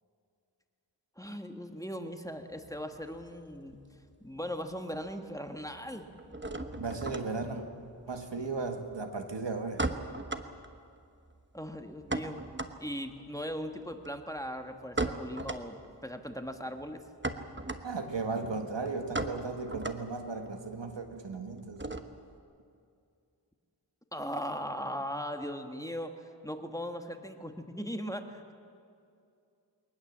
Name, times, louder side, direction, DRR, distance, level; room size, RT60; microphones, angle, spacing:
voice 1, 1.2-3.8 4.2-6.1 11.5-12.5 12.8-17.0 24.1-28.5, equal, 10° left, 5 dB, 1.5 m, -39 dB
sound 1, 2.5-4.1 4.4-5.1 5.4-22.4, right 2 dB, 25° right, 1.1 m, -39 dB
voice 2, 6.8-7.6 8.1-9.8 17.8-21.8, right 3 dB, 85° right, 5 dB, 1.7 m, -36 dB
22.0 x 19.5 x 7.4 m, 2.4 s
wide cardioid pair, 55°, 42 cm